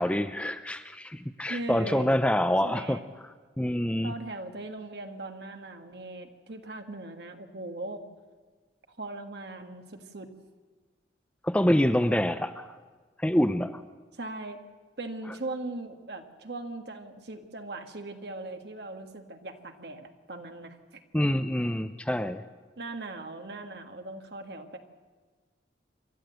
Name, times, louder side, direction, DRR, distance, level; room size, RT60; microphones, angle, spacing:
voice 1, 0.0-3.0 3.6-4.1 11.4-12.7 13.2-13.8 21.1-22.4, left 1 dB, 5° left, 10 dB, 0.5 m, -26 dB
voice 2, 1.5-2.1 2.6-3.0 4.0-8.0 8.9-10.3 14.1-14.6 15.0-21.0 22.8-24.8, right 2 dB, 65° right, 5 dB, 1.6 m, -39 dB
27.0 x 12.5 x 7.9 m, 1.4 s
head